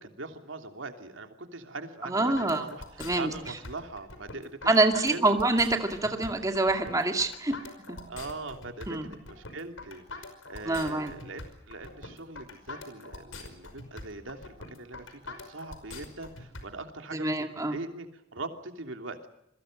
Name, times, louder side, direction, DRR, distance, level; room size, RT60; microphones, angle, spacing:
voice 1, 0.0-2.8 3.1-4.8 5.1-5.2 8.1-19.3, right 2 dB, 80° right, 5 dB, 3.1 m, -41 dB
voice 2, 2.0-2.6 3.0-3.3 4.7-7.5 7.9-8.0 8.9-9.1 10.6-11.1 17.1-17.8, right 2 dB, 15° right, 5 dB, 2.3 m, -26 dB
sound 1, 2.3-16.6, left 2 dB, 90° left, 5.4 m, -43 dB
28.0 x 22.5 x 6.6 m, 0.82 s
head